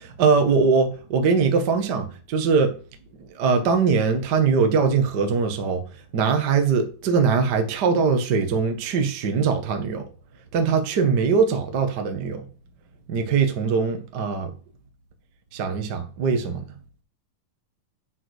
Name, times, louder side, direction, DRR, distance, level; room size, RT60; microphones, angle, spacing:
voice 1, 0.0-2.8 3.3-5.8 6.1-10.0 10.5-12.5 13.1-14.5 15.5-16.6, right 5 dB, 55° right, 1.2 m, -21 dB
8.9 x 6.0 x 4.9 m
omnidirectional pair, 4.1 m